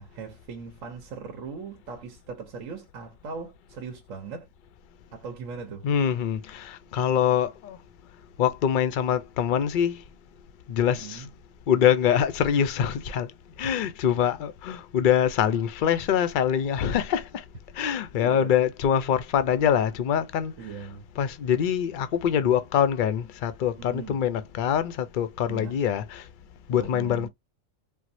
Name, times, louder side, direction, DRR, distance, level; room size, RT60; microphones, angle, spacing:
voice 1, 0.0-4.5 5.1-5.9 10.9-11.3 13.6-13.7 18.2-18.5 20.4-21.1 23.8-24.2 25.5-25.8 26.7-27.3, right 5 dB, 80° right, 1.1 m, -39 dB
voice 2, 5.8-7.8 8.4-10.0 10.7-11.2 11.7-13.3 13.6-17.4 17.8-20.5 21.2-26.2 26.7-27.3, left 9 dB, 65° left, 0.5 m, -24 dB
4.5 x 2.0 x 2.6 m
omnidirectional pair, 1.3 m